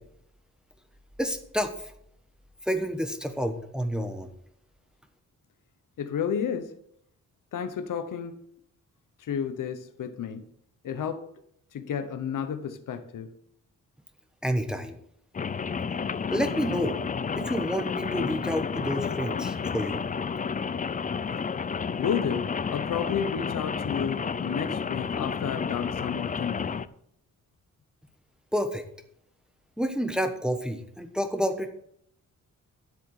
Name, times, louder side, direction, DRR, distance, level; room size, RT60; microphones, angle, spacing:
voice 1, 1.2-1.9 2.7-4.3 14.4-15.0 16.3-17.0 17.4-20.1 28.5-28.8 29.8-31.7, equal, ahead, 1.1 m, -29 dB
voice 2, 6.0-6.7 7.5-8.4 9.2-10.4 10.8-11.2 11.7-13.3 22.0-26.8, left 7 dB, 85° left, 1.1 m, -31 dB
Rain, 15.3-26.9, left 6 dB, 25° left, 0.4 m, -31 dB
10.0 x 7.9 x 6.5 m
wide cardioid pair, 120°, 31 cm